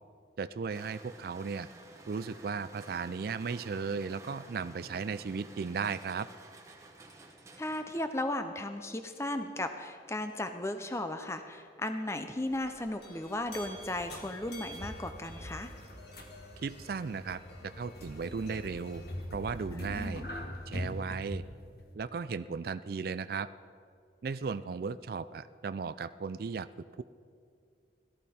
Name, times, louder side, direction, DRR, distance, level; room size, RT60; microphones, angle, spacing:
voice 1, 0.4-1.7 2.1-6.3 16.6-19.0 19.3-20.2 20.7-21.4 21.9-23.5 24.2-26.7, right 5 dB, 55° right, 13 dB, 0.3 m, -36 dB
sound 1, 0.7-8.3, right 2 dB, 15° right, 1.0 m, -52 dB
voice 2, 7.6-15.7 19.7-20.3, left 1 dB, 15° left, 7 dB, 0.5 m, -36 dB
sound 2, 12.4-19.2, equal, 75° left, 2.6 m, -52 dB
sound 3, 13.5-21.9, left 1 dB, 55° left, 1.5 m, -43 dB
17.5 x 13.5 x 4.3 m, 2.3 s
head